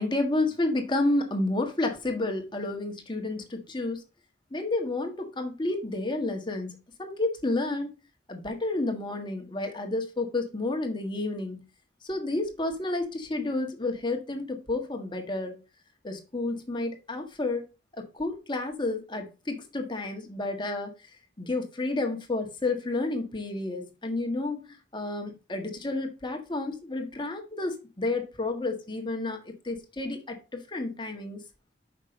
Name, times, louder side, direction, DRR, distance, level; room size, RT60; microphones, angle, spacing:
voice 1, 0.0-4.0 4.5-7.9 8.3-11.6 12.0-15.6 16.0-17.7 18.0-20.9 21.4-31.4, left 2 dB, 25° left, 1.5 m, -30 dB
5.9 x 5.8 x 5.2 m
head